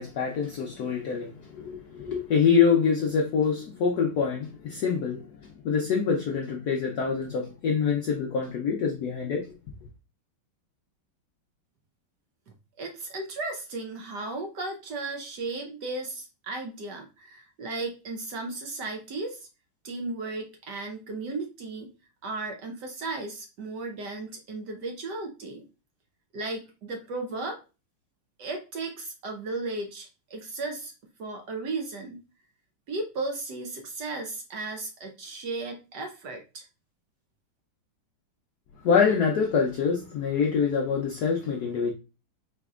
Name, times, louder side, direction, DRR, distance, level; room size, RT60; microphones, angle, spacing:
voice 1, 0.0-9.5 38.8-41.9, left 6 dB, 75° left, 0.9 m, -25 dB
voice 2, 12.8-19.5 19.8-21.9 22.2-25.6 26.3-27.6 28.4-30.9 31.2-32.2 32.9-36.6, right 3 dB, 65° right, 1.1 m, -35 dB
4.3 x 4.0 x 2.4 m
omnidirectional pair, 2.4 m